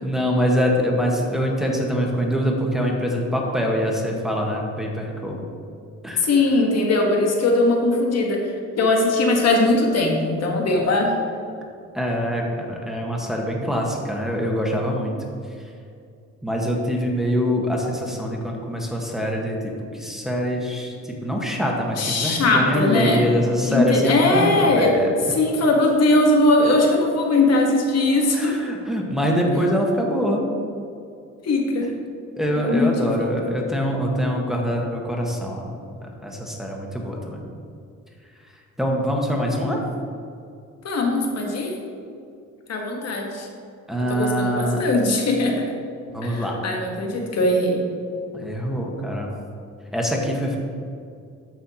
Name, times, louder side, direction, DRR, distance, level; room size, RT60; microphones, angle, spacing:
voice 1, 0.0-5.4 6.0-6.6 11.9-15.1 16.4-25.2 28.3-30.4 32.4-35.7 36.0-37.4 38.8-39.8 43.9-44.9 46.1-46.5 48.3-49.3 49.9-50.6, equal, ahead, -1 dB, 1.4 m, -24 dB
voice 2, 6.2-8.4 8.8-11.1 22.0-23.2 23.7-24.9 25.3-28.6 31.4-31.9 32.6-33.3 40.8-41.7 42.7-43.5 44.1-45.6 46.2-47.8, left 2 dB, 55° left, 1 dB, 1.4 m, -20 dB
13.0 x 5.6 x 2.9 m, 2.4 s
cardioid pair, 90°, 30 cm